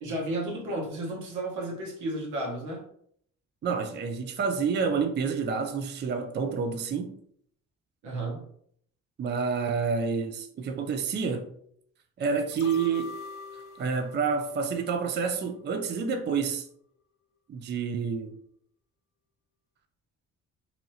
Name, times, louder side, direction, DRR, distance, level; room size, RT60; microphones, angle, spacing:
voice 1, 0.0-2.9 8.0-8.4, right 1 dB, 80° right, 1.2 m, -33 dB
voice 2, 3.6-7.1 9.2-11.5 12.2-13.2 13.8-16.7 17.5-18.3, right 5 dB, 35° right, 0.4 m, -28 dB
sound 1, 12.5-15.6 16.0-16.1, left 5 dB, 50° left, 0.5 m, -44 dB
2.9 x 2.7 x 2.8 m
cardioid pair, 90°, 30 cm